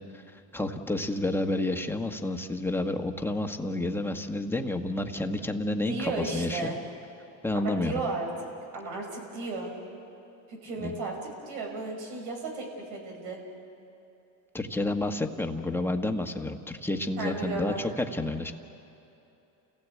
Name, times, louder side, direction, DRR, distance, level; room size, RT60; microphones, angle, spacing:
voice 1, 0.1-6.7 7.4-7.9 10.8-10.9 14.5-18.5, left 2 dB, 5° left, 5 dB, 1.4 m, -30 dB
voice 2, 5.7-6.8 7.5-9.7 10.5-13.4 17.2-17.9, right 3 dB, 85° right, 1 dB, 5.9 m, -35 dB
29.0 x 16.5 x 8.4 m, 2.9 s
cardioid pair, 110°, 40 cm